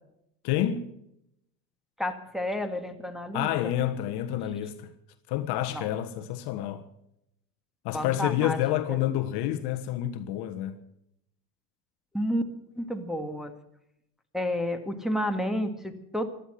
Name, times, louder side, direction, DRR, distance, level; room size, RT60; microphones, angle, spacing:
voice 1, 0.4-0.9 3.3-4.9 5.3-6.9 7.8-10.8, left 12 dB, 55° left, 1.4 m, -28 dB
voice 2, 2.0-3.8 5.7-5.9 7.9-8.6 8.9-9.0 12.1-12.4 12.8-13.5 14.3-16.3, left 1 dB, ahead, 2.1 m, -30 dB
15.5 x 11.5 x 7.8 m
hypercardioid pair, 75°, 48 cm